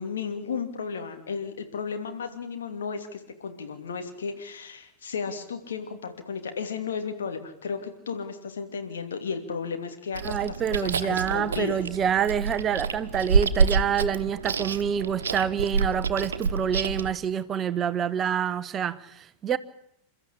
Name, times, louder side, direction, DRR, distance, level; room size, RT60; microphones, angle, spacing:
voice 1, 0.0-11.8, left 5 dB, 65° left, 2.8 m, -34 dB
Chewing mastication, 10.1-17.1, right 5 dB, 65° right, 1.2 m, -27 dB
voice 2, 10.2-19.6, right 8 dB, 25° right, 0.8 m, -27 dB
29.0 x 13.0 x 8.6 m
figure-of-eight pair, 90°, 0 cm